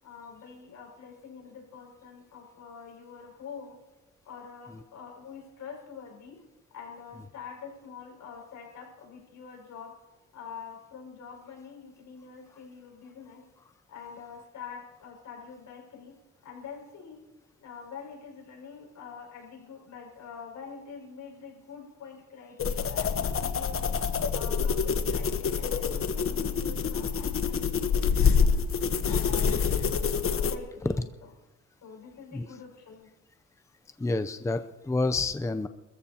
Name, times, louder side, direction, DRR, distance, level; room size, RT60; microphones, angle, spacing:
voice 1, 0.0-3.8 4.2-6.4 6.7-9.9 10.3-13.4 13.9-16.2 16.4-17.2 17.6-23.9 24.3-28.6 29.0-29.6 29.9-31.1 31.8-33.1, left 6 dB, 70° left, -1 dB, 6.0 m, -45 dB
sound 1, 22.6-30.6, left 6 dB, 45° left, 1.2 m, -26 dB
voice 2, 34.0-35.7, left 3 dB, 10° left, 9 dB, 0.6 m, -29 dB
28.0 x 14.5 x 2.9 m, 1.1 s
cardioid pair, 90°, 30 cm